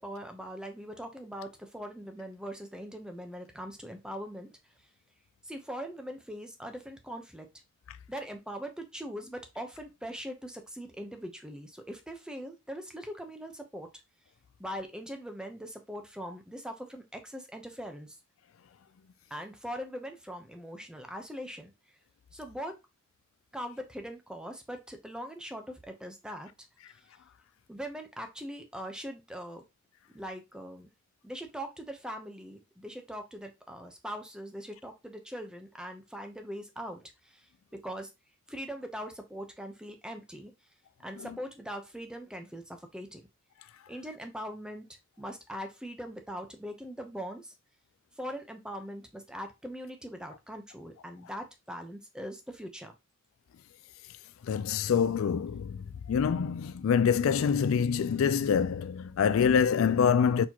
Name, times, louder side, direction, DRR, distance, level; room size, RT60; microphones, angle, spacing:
voice 1, 0.0-4.5 5.4-7.5 8.1-13.9 14.6-18.2 19.3-21.7 22.3-22.8 23.5-26.5 27.7-29.6 30.1-30.9 31.2-37.5 37.7-38.1 38.5-40.5 41.0-43.2 43.9-47.5 48.2-52.9, equal, 5° right, 0.7 m, -41 dB
voice 2, 54.4-60.5, left 7 dB, 75° left, 0.3 m, -26 dB
4.5 x 4.1 x 2.9 m
head